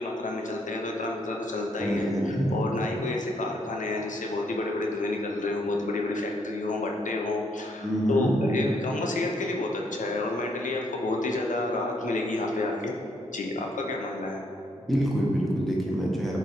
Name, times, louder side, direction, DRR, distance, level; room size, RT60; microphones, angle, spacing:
voice 1, 0.0-12.9 13.3-14.4, left 2 dB, 85° left, 0 dB, 0.6 m, -30 dB
voice 2, 1.8-2.5 7.8-8.4 14.9-16.4, equal, ahead, -4 dB, 1.3 m, -26 dB
8.4 x 3.0 x 4.2 m, 2.6 s
wide cardioid pair, 65°, 13 cm